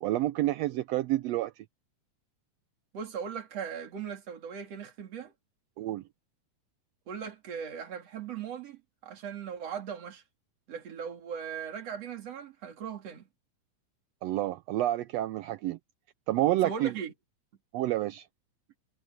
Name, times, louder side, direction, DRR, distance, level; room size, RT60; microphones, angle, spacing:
voice 1, 0.0-1.5 5.8-6.0 14.2-15.8 16.3-16.9 17.7-18.3, right 15 dB, 85° right, 1.4 m, -29 dB
voice 2, 2.9-5.3 7.1-10.2 10.7-13.3 16.6-17.1, right 7 dB, 55° right, 4.0 m, -39 dB
omnidirectional pair, 3.5 m